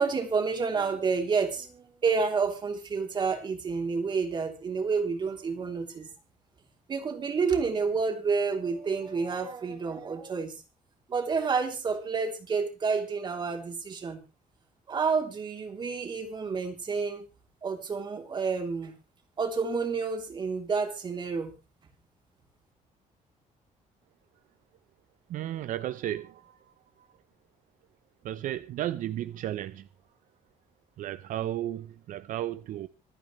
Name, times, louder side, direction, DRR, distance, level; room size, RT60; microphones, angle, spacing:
voice 1, 0.0-6.1 6.9-10.6 11.1-14.2 14.9-17.3 17.6-18.9 19.4-21.5, right 5 dB, 35° right, 3.1 m, -29 dB
voice 2, 25.3-27.1 28.2-29.9 31.0-32.9, right 12 dB, 70° right, 0.8 m, -34 dB
26.0 x 9.0 x 3.2 m
cardioid pair, 160°, 14 cm